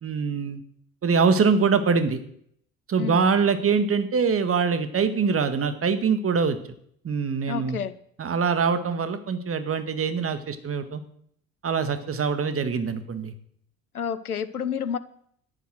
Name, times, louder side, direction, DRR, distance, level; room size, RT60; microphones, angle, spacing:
voice 1, 0.0-0.6 1.0-2.2 2.9-6.6 7.0-7.8 8.2-11.0 11.6-13.3, right 5 dB, 30° right, 10 dB, 1.9 m, -23 dB
voice 2, 7.5-7.9 13.9-15.0, left 7 dB, 90° left, 14 dB, 0.8 m, -29 dB
13.5 x 10.5 x 6.4 m, 0.67 s
figure-of-eight pair, 60°, 43 cm